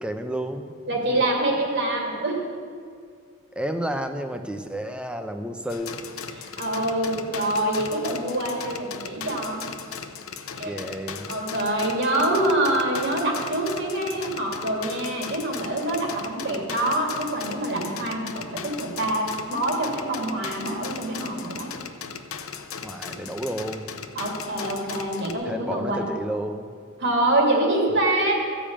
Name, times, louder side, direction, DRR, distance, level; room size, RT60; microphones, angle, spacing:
voice 1, 0.0-1.2 3.5-6.0 10.6-11.3 22.8-23.9 25.4-26.7, equal, 5° right, 7 dB, 0.6 m, -31 dB
voice 2, 0.9-2.4 6.4-9.6 10.5-10.7 11.3-21.7 24.1-26.1 27.0-28.3, right 1 dB, 55° right, -1 dB, 2.6 m, -25 dB
sound 1, 5.7-25.3, left 6 dB, 90° left, 0.8 m, -38 dB
14.0 x 5.1 x 8.7 m, 2.2 s
head